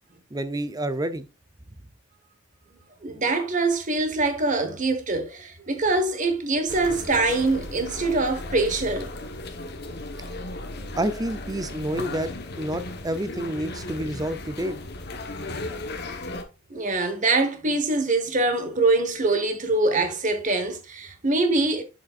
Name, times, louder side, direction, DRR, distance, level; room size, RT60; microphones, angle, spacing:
voice 1, 0.3-1.3 11.0-12.3 12.6-14.8, right 1 dB, 15° right, 0.5 m, -28 dB
voice 2, 3.0-9.1 16.7-21.8, right 2 dB, 35° right, 1.2 m, -24 dB
sound 1, 6.7-16.4, left 2 dB, 50° left, 1.1 m, -36 dB
7.5 x 6.6 x 2.4 m
head